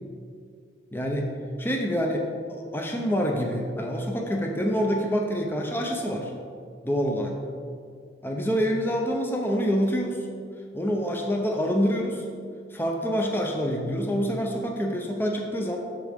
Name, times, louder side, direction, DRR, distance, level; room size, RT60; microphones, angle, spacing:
voice 1, 0.9-1.3 1.6-6.3 6.8-7.4 8.2-10.2 10.7-12.2 12.7-15.8, equal, 10° left, 1 dB, 0.6 m, -26 dB
13.5 x 4.7 x 3.6 m, 2.2 s
head